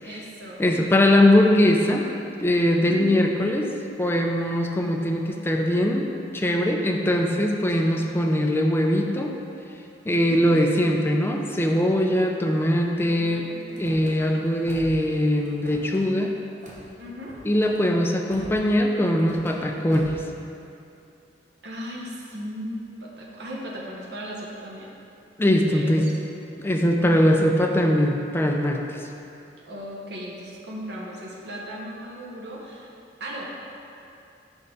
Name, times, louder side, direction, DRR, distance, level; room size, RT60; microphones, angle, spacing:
voice 1, 0.0-0.6 2.8-3.1 7.7-7.9 10.2-10.6 13.1-13.9 17.0-17.4 21.6-24.9 25.7-26.1 27.0-27.3 29.6-32.9 33.2-33.5, equal, 70° right, -4 dB, 1.0 m, -37 dB
voice 2, 0.6-2.1 2.4-3.7 4.0-9.3 10.1-13.5 13.8-16.3 17.4-20.1 25.4-26.1 26.6-29.0, left 1 dB, 15° left, 2 dB, 0.4 m, -21 dB
Car / Slam, 13.7-14.1 14.6-15.1 15.4-16.0 16.6-16.9 17.2-17.8 18.3-18.7 19.2-19.6 19.9-20.3, equal, 45° right, 1.0 m, -43 dB
5.4 x 5.4 x 3.8 m, 2.7 s
head